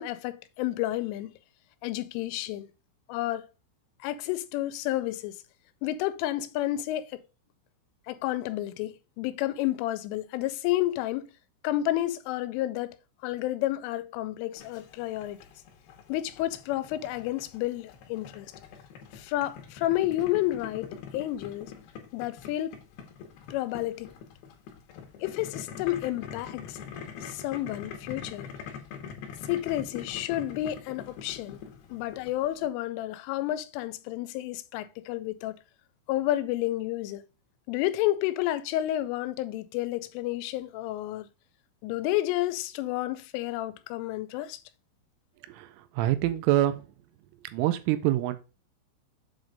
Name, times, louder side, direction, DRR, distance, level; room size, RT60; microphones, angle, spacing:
voice 1, 0.0-1.3 1.8-2.7 3.1-3.5 4.0-5.4 5.8-7.2 8.1-11.3 11.6-13.0 13.2-15.4 16.1-18.5 19.1-21.7 22.1-22.8 23.5-24.1 25.2-26.8 27.2-28.5 29.4-31.6 31.9-35.6 36.1-37.3 37.7-41.3 41.8-44.6, left 14 dB, 85° left, 3.1 m, -30 dB
Boiling, 14.6-32.7, left 7 dB, 70° left, 2.5 m, -44 dB
voice 2, 45.5-46.8 47.5-48.4, right 14 dB, 85° right, 3.2 m, -26 dB
7.8 x 3.2 x 5.1 m
omnidirectional pair, 5.6 m